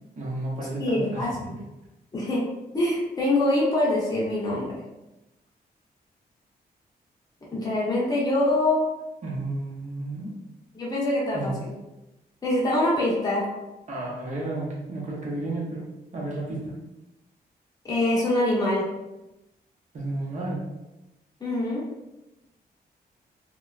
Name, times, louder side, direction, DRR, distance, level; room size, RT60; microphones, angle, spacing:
voice 1, 0.2-1.4 9.2-10.4 11.3-11.6 13.9-16.8 19.9-20.7, right 2 dB, 45° right, -4 dB, 0.8 m, -32 dB
voice 2, 0.8-1.3 2.1-2.4 2.7-4.8 7.5-8.9 10.7-11.7 12.4-13.4 17.8-18.9 21.4-21.8, left 1 dB, 25° left, -7 dB, 0.9 m, -24 dB
3.1 x 2.2 x 2.4 m, 0.99 s
wide cardioid pair, 175°, 17 cm